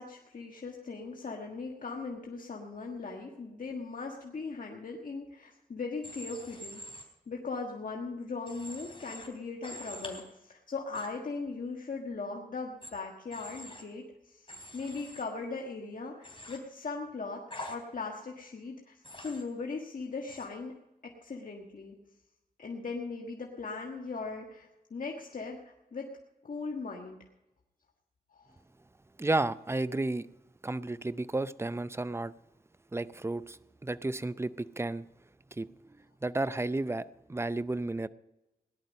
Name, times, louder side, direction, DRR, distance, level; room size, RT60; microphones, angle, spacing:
voice 1, 0.0-17.4 17.7-20.7 21.2-22.0 22.6-26.1 26.4-27.2 28.4-28.5, left 4 dB, 65° left, 0 dB, 1.6 m, -39 dB
Human voice / Train, 6.0-7.0 8.5-9.3 9.6-10.2 10.9-11.1 12.8-12.9 13.3-13.8 14.5-15.2 16.2-16.6 17.5-17.8 19.0-19.4 20.3-20.5, left 1 dB, 35° left, 3.4 m, -45 dB
voice 2, 29.2-30.3 30.6-32.3 32.9-35.1 35.5-38.1, right 2 dB, 15° right, 15 dB, 0.6 m, -33 dB
18.0 x 11.0 x 5.4 m, 0.99 s
wide cardioid pair, 70°, 15 cm